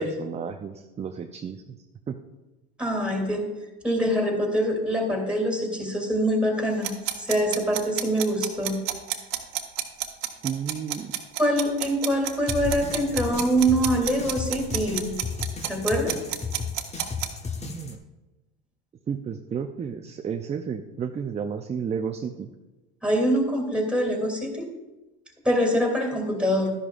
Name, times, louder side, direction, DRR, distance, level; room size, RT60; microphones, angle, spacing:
voice 1, 0.0-1.8 2.1-2.2 10.4-11.1 17.6-18.0 19.1-22.5, right 7 dB, 20° right, 5 dB, 0.5 m, -32 dB
voice 2, 2.8-3.5 3.8-6.9 7.2-8.8 11.4-15.1 15.6-16.2 23.0-24.7 25.4-26.7, equal, 5° right, 1 dB, 2.8 m, -24 dB
sound 1, 6.8-17.3, right 14 dB, 65° right, 1.2 m, -30 dB
sound 2, 12.5-18.0, left 5 dB, 20° left, 1.0 m, -34 dB
12.5 x 11.0 x 2.5 m, 1.1 s
supercardioid pair, 100°, 31 cm